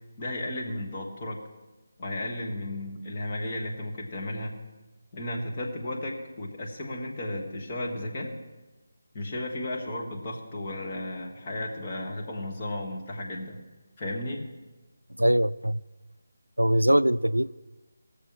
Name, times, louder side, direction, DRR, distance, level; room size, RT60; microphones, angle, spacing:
voice 1, 0.2-1.4 2.0-4.6 5.1-8.3 9.1-13.6 14.0-14.5, left 1 dB, 25° left, 1.6 m, -34 dB
voice 2, 15.2-15.8 16.6-17.5, equal, 85° right, 0.3 m, -22 dB
19.0 x 6.9 x 4.9 m
figure-of-eight pair, 155°, 0 cm